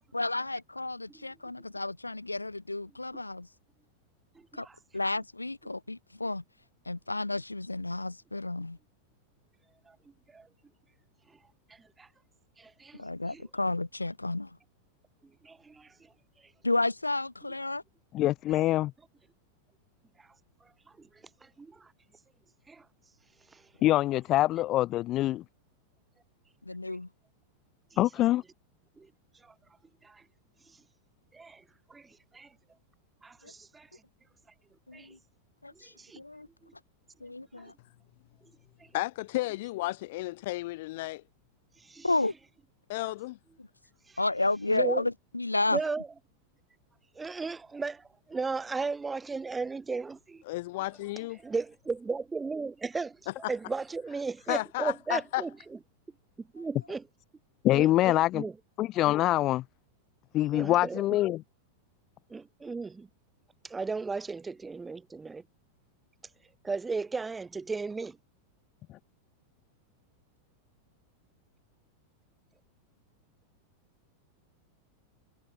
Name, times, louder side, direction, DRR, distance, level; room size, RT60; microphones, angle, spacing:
voice 1, 0.1-3.5 4.5-4.7 4.9-6.4 6.9-8.8 13.0-14.6 16.6-17.8 26.7-27.1 33.4-33.5 34.9-35.2 35.6-36.5 37.2-37.7 42.0-42.3 44.2-45.8, left 2 dB, 85° left, 0.5 m, -31 dB
voice 2, 12.6-13.0 13.3-13.4 15.4-15.9 21.0-21.1 21.4-21.9 22.7-22.8 23.5-23.6 29.0-29.1 29.4-29.5 30.0-30.2 31.3-31.6 31.9-32.5 33.2-33.9 34.9-35.1 35.8-36.2 41.8-42.1 43.0-43.1 44.7-45.0 45.7-46.1 47.1-50.4 51.4-53.2 53.5-55.5 56.4-57.0 57.7-58.5 60.5-61.0 62.3-63.1 63.6-65.4 66.6-68.2, right 4 dB, 10° right, 1.4 m, -35 dB
voice 3, 18.1-18.9 23.8-25.4 28.0-28.4 57.6-58.4 58.8-59.6 60.3-61.4, left 15 dB, 35° left, 0.9 m, -25 dB
voice 4, 38.9-41.2 42.9-43.4 50.5-51.4 53.3-53.5 54.5-55.4, left 19 dB, 50° left, 2.4 m, -33 dB
figure-of-eight pair, 90°, 0 cm